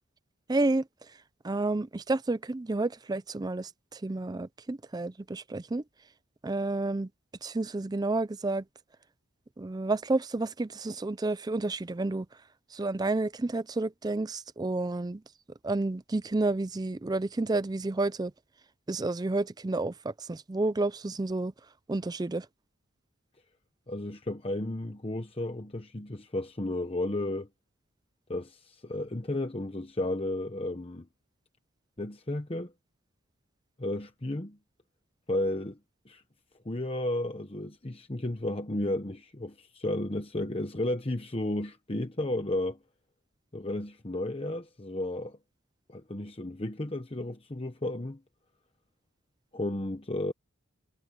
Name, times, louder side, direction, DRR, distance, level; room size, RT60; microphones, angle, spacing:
voice 1, 0.5-0.8 1.4-5.8 6.4-7.1 7.4-8.6 9.6-12.3 12.7-15.2 15.6-18.3 18.9-21.5 21.9-22.5, right 2 dB, 20° right, 0.4 m, -30 dB
voice 2, 23.9-27.5 28.3-31.1 32.0-32.7 33.8-34.6 35.3-35.8 36.0-36.2 36.6-42.8 43.5-45.4 45.9-48.2 49.5-50.3, left 1 dB, 25° left, 1.0 m, -33 dB
head